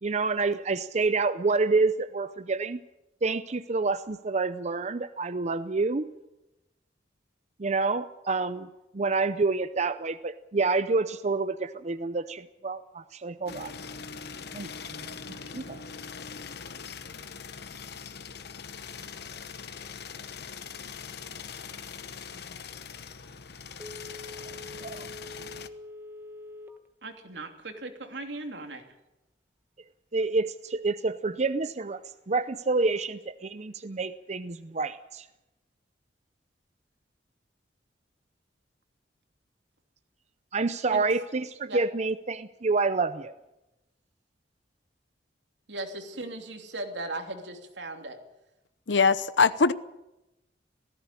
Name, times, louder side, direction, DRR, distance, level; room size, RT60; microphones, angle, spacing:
voice 1, 0.0-2.8 3.2-6.1 7.6-8.7 8.9-13.7 14.5-15.8 24.8-25.1 30.1-32.0 32.3-35.3 40.5-43.3, right 3 dB, 40° right, 12 dB, 0.6 m, -28 dB
sound 1, 13.5-25.7, left 6 dB, 65° left, 1.1 m, -42 dB
Telephone, 23.8-26.9 27.3-27.4, left 2 dB, 10° right, 1.4 m, -44 dB
voice 2, 27.0-28.8 40.9-41.0 41.7-41.8 45.7-48.2, right 2 dB, 75° right, 5 dB, 2.9 m, -37 dB
voice 3, 48.9-49.7, left 4 dB, 85° left, 15 dB, 0.9 m, -21 dB
18.0 x 15.5 x 9.8 m, 0.94 s
head